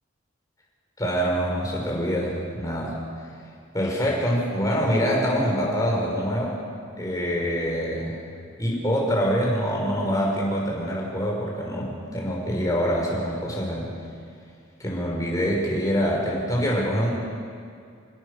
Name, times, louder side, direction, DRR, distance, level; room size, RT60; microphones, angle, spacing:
voice 1, 1.0-3.0 3.7-6.6 7.0-8.2 8.6-13.9 14.8-17.1, equal, 20° left, -2 dB, 5.9 m, -25 dB
28.5 x 17.5 x 7.0 m, 2.3 s
head